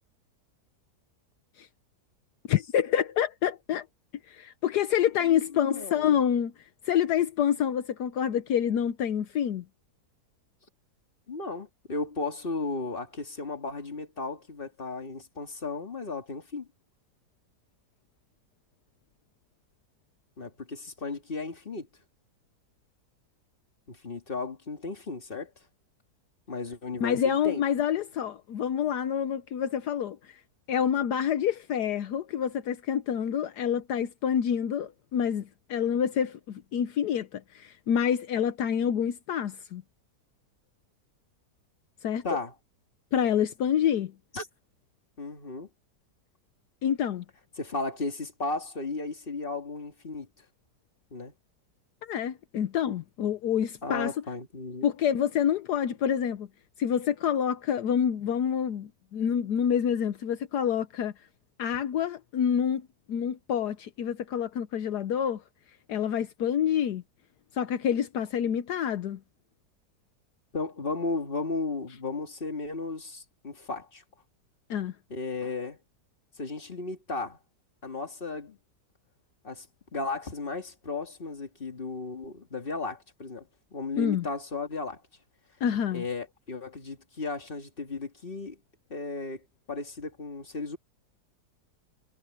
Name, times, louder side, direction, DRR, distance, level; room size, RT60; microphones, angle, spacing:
voice 1, 2.5-3.8 4.3-6.5 6.9-9.6 27.0-30.3 30.7-39.8 42.0-42.2 43.1-44.1 46.8-47.2 52.0-54.1 54.8-56.5 56.8-61.1 61.6-62.8 63.1-65.4 65.9-67.0 67.5-69.2 74.7-74.9 84.0-84.2 85.6-86.0, left 9 dB, 75° left, 1.4 m, -27 dB
voice 2, 5.2-6.2 11.3-16.7 20.4-21.9 23.9-25.5 26.5-27.6 42.2-42.5 44.3-44.5 45.2-45.7 47.6-50.3 51.1-51.3 53.8-54.9 70.5-74.0 75.1-75.8 76.4-77.4 77.8-78.6 79.4-79.7 79.9-85.0 85.9-88.6 88.9-90.8, left 3 dB, 30° left, 2.4 m, -35 dB
omnidirectional pair, 1.8 m